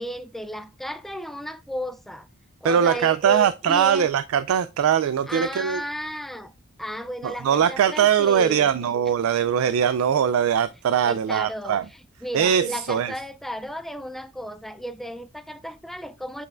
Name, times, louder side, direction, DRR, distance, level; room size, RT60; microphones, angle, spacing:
voice 1, 0.0-2.3 2.6-4.1 5.3-6.5 6.8-8.9 11.0-11.8 12.2-16.5, equal, ahead, 0.3 m, -34 dB
voice 2, 2.6-5.8 7.2-11.9 12.3-13.1, right 8 dB, 80° right, 0.3 m, -21 dB
8.0 x 5.4 x 2.4 m
head